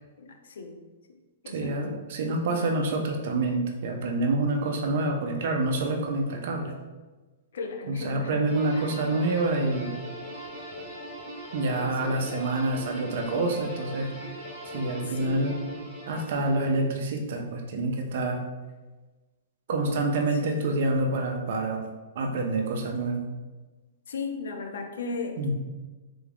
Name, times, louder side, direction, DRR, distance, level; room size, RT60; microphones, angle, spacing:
voice 1, 0.2-0.8 1.4-1.7 7.5-9.0 11.8-12.3 14.7-15.8 20.4-20.5 24.1-25.5, left 4 dB, 75° left, 4 dB, 0.5 m, -37 dB
voice 2, 1.5-6.7 7.9-10.0 11.5-14.1 14.7-15.6 16.1-18.4 19.7-21.8 22.2-23.2 25.4-25.5, right 2 dB, 45° right, 3 dB, 0.5 m, -27 dB
sound 1, 8.5-16.8, right 1 dB, 5° right, 1.0 m, -40 dB
3.3 x 2.4 x 3.4 m, 1.2 s
hypercardioid pair, 175°, 0 cm